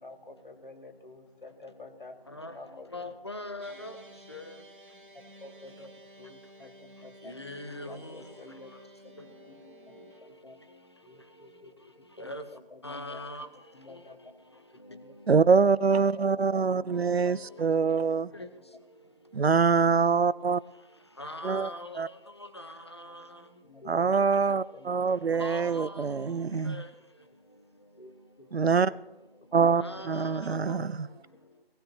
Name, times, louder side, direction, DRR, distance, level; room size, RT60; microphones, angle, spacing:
voice 1, 0.0-2.2 2.5-2.9 5.4-5.9 6.2-7.3 7.8-8.7 9.9-10.6 11.0-11.7 12.2-13.2 13.7-14.2 14.9-15.2 16.1-16.2 16.5-16.6 16.9-17.4 18.4-18.5 23.7-25.7 28.0-28.1 28.4-28.5 28.9-29.0 29.5-30.6, left 2 dB, 55° left, 1.8 m, -49 dB
voice 2, 2.9-4.0 4.3-4.4 7.3-8.0 12.2-12.4 12.8-13.5 21.2-22.0 22.6-22.7 25.4-26.0 26.7-26.8 29.8-30.3 30.7-30.8, left 1 dB, 25° left, 0.8 m, -39 dB
sound 1, 3.6-10.2, equal, 55° right, 1.5 m, -53 dB
voice 3, 15.3-18.3 19.3-20.6 21.4-21.7 22.0-22.1 23.9-26.8 28.5-28.9 29.5-31.1, right 5 dB, 90° right, 0.6 m, -24 dB
18.5 x 15.5 x 2.8 m
figure-of-eight pair, 165°, 30 cm